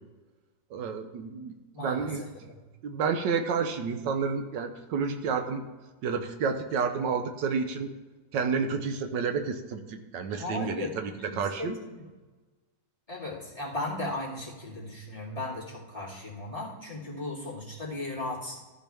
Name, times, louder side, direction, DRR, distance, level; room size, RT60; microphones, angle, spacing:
voice 1, 0.7-1.5 1.8-2.2 2.8-5.6 6.0-7.9 8.3-11.8, right 5 dB, 80° right, 7 dB, 1.5 m, -30 dB
voice 2, 1.7-2.6 10.3-12.0 13.1-18.6, left 2 dB, 20° left, -6 dB, 2.5 m, -36 dB
14.0 x 7.1 x 3.4 m, 1.3 s
omnidirectional pair, 1.9 m